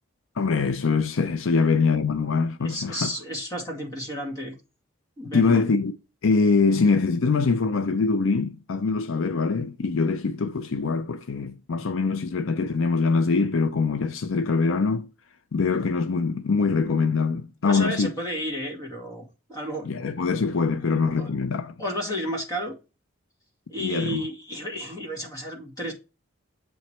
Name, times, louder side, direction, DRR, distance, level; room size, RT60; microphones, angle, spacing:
voice 1, 0.4-3.1 5.3-5.9 6.2-15.1 15.5-18.1 19.9-21.7 23.8-24.3, left 4 dB, 75° left, 0.5 m, -23 dB
voice 2, 2.6-4.5 5.2-5.6 17.6-19.9 21.2-21.3 21.8-22.7 23.7-25.9, equal, 15° left, 2.0 m, -32 dB
8.2 x 3.1 x 4.3 m
head